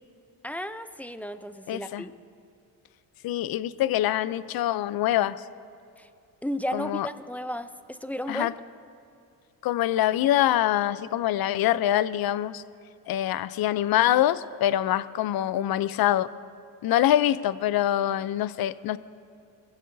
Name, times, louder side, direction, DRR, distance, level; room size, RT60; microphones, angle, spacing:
voice 1, 0.4-2.1 6.0-6.1 6.4-8.5, equal, 5° left, 10 dB, 0.6 m, -33 dB
voice 2, 1.7-2.0 3.2-5.4 6.7-7.1 8.3-8.5 9.6-12.6 13.1-16.3 16.8-19.0, left 12 dB, 55° left, 16 dB, 0.6 m, -24 dB
22.5 x 15.5 x 2.7 m, 2.5 s
supercardioid pair, 80°, 43 cm